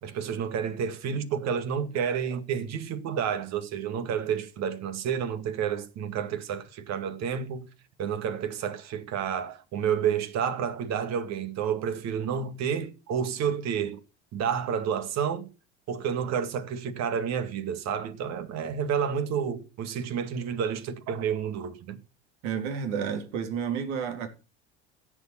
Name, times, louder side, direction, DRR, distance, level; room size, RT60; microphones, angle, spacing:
voice 1, 0.0-7.7 8.0-14.0 14.3-15.5 15.9-22.0, right 7 dB, 50° right, 2.3 m, -30 dB
voice 2, 22.4-24.3, right 7 dB, 65° right, 3.6 m, -30 dB
16.0 x 7.9 x 5.9 m
hypercardioid pair, 80°, 34 cm